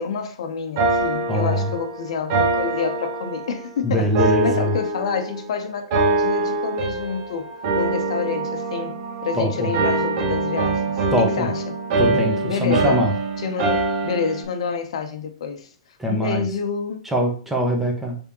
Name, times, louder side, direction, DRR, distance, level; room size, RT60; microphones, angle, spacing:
voice 1, 0.0-11.8 12.4-13.0 13.4-15.7 16.1-17.1, left 6 dB, 70° left, 0.7 m, -28 dB
sound 1, 0.8-3.7 4.1-5.5 5.9-7.3 7.6-9.4 9.7-14.4, right 3 dB, 50° right, 0.9 m, -24 dB
voice 2, 1.3-1.7 3.8-4.7 9.4-9.7 11.1-11.5 12.0-13.1 16.0-16.4 17.1-18.2, equal, 5° right, 1.0 m, -22 dB
sound 2, 6.8-14.0, right 3 dB, 80° right, 1.4 m, -37 dB
3.5 x 3.4 x 2.9 m
hypercardioid pair, 130°, 3 cm